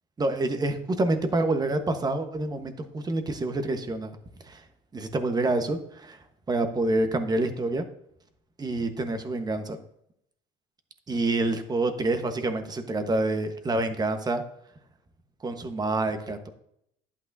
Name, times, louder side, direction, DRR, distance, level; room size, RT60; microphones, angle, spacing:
voice 1, 0.2-4.1 4.4-4.6 4.9-6.2 6.5-7.8 8.6-9.8 11.1-14.4 15.4-16.5, right 2 dB, 25° right, 7 dB, 1.2 m, -27 dB
11.0 x 8.5 x 2.7 m, 0.74 s
supercardioid pair, 85°, 16 cm